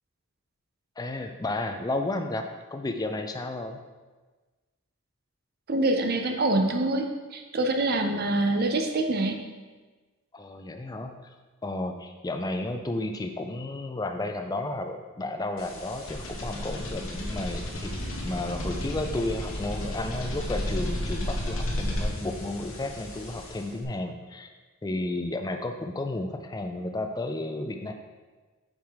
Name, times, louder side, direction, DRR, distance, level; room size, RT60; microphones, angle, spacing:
voice 1, 1.0-3.8 10.3-11.3 11.6-24.5 24.8-27.9, left 2 dB, 15° left, 5 dB, 0.3 m, -32 dB
voice 2, 5.7-9.4, right 2 dB, 45° right, 5 dB, 0.6 m, -25 dB
sound 1, 15.6-23.8, left 1 dB, 65° left, 1.1 m, -33 dB
7.3 x 4.8 x 3.6 m, 1.3 s
head